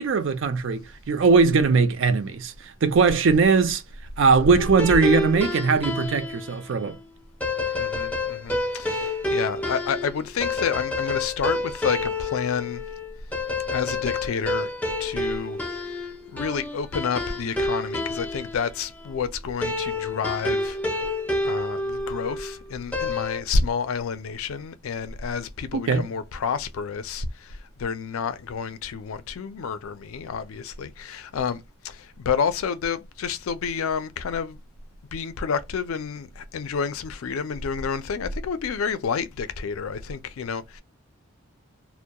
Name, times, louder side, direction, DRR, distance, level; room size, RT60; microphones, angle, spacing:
voice 1, 0.0-2.5 2.8-3.8 4.2-7.0 25.9-26.1, right 4 dB, 65° right, 0.4 m, -20 dB
sound 1, 4.6-6.4 7.4-18.6 19.6-22.5 22.9-23.4, left 2 dB, 5° left, 0.5 m, -28 dB
voice 2, 7.7-12.8 13.7-14.7 15.0-15.6 16.2-20.8 21.4-34.6 35.1-40.8, left 6 dB, 85° left, 0.4 m, -29 dB
2.2 x 2.0 x 2.7 m
head